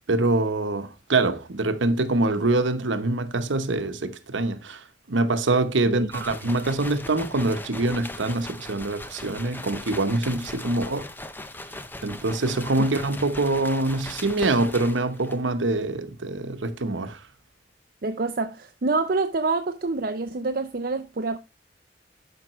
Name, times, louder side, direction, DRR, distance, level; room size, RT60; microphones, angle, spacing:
voice 1, 0.1-11.1 12.0-17.2, right 2 dB, 90° right, 1.0 m, -25 dB
sound 1, 6.1-15.5, left 1 dB, 10° left, 0.6 m, -39 dB
voice 2, 18.0-21.4, right 3 dB, 50° right, 0.6 m, -26 dB
12.5 x 5.2 x 3.1 m
head